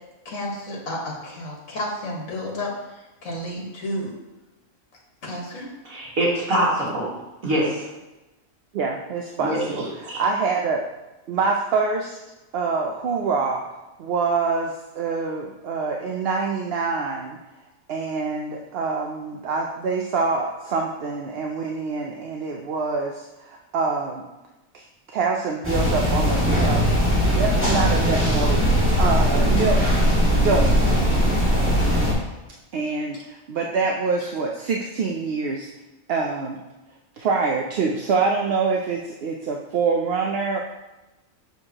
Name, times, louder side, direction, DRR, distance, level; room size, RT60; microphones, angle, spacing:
voice 1, 0.3-4.1 5.2-5.7, left 1 dB, 75° left, -3 dB, 1.9 m, -31 dB
voice 2, 5.9-7.1 7.4-7.9 9.4-10.2, right 1 dB, 90° right, -6 dB, 2.4 m, -24 dB
voice 3, 8.7-10.8 11.3-12.2 12.5-13.6 14.0-17.4 17.9-24.3 24.7-29.8 30.3-31.0 32.7-35.7 36.1-36.6 37.2-40.6, right 4 dB, 60° right, 1 dB, 0.7 m, -25 dB
sound 1, 25.6-32.1, equal, 10° right, 1.7 m, -19 dB
6.9 x 6.3 x 2.9 m, 1.0 s
omnidirectional pair, 1.4 m